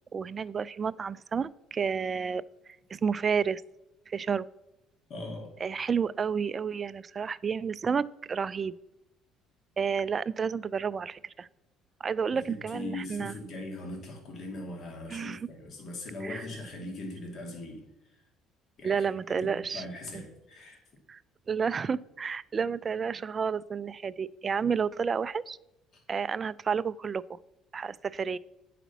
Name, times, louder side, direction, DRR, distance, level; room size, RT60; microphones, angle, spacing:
voice 1, 0.1-2.4 2.9-3.6 4.1-4.5 5.6-8.7 9.8-11.5 12.0-13.3 15.1-15.5 16.2-16.4 18.8-19.8 20.1-20.2 21.1-21.2 21.5-25.6 26.1-27.4 27.7-28.4, right 6 dB, 35° right, 17 dB, 0.3 m, -30 dB
voice 2, 5.1-5.5 12.3-18.2 18.8-19.1 19.4-20.8, left 2 dB, 55° left, 0 dB, 2.5 m, -40 dB
9.1 x 5.0 x 5.9 m, 0.92 s
supercardioid pair, 90°, 0 cm